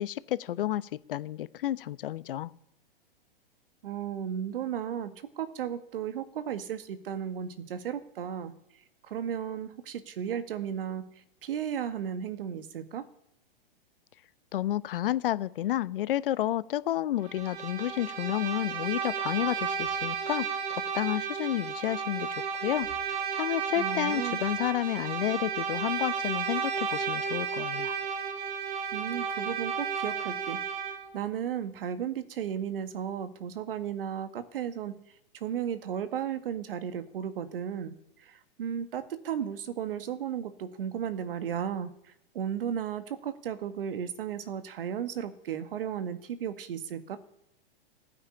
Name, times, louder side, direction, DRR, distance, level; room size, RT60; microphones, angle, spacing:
voice 1, 0.0-2.5 14.5-22.3 22.6-27.9, left 13 dB, 65° left, 18 dB, 0.9 m, -31 dB
voice 2, 3.8-8.5 9.0-11.1 11.4-13.0 23.8-24.4 28.9-30.6 31.1-35.0 35.3-41.9 42.3-47.2, right 8 dB, 65° right, 11 dB, 1.9 m, -34 dB
Bowed string instrument, 17.2-31.1, right 6 dB, 50° right, 3.2 m, -33 dB
15.5 x 8.8 x 9.9 m, 0.86 s
hypercardioid pair, 125°, 30 cm